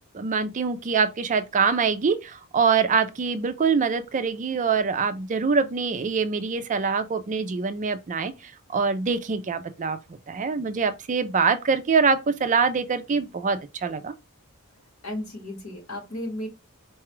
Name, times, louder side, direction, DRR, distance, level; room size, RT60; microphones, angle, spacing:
voice 1, 0.1-8.3 8.7-10.0 10.3-14.1, right 5 dB, 35° right, 0.4 m, -24 dB
voice 2, 15.0-16.5, left 1 dB, 70° left, 1.9 m, -34 dB
4.7 x 2.3 x 3.0 m
head